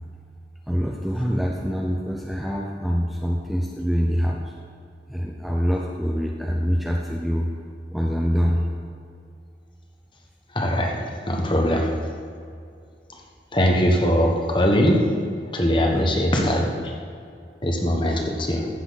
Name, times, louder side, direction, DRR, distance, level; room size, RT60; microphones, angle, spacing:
voice 1, 0.7-4.5 5.1-7.5 7.9-8.7 15.9-16.5, equal, ahead, -2 dB, 0.6 m, -25 dB
voice 2, 10.5-11.0 11.3-11.9 13.5-15.0 15.5-16.7 17.6-18.7, equal, 30° left, 1 dB, 1.2 m, -21 dB
14.5 x 7.5 x 4.1 m, 2.3 s
head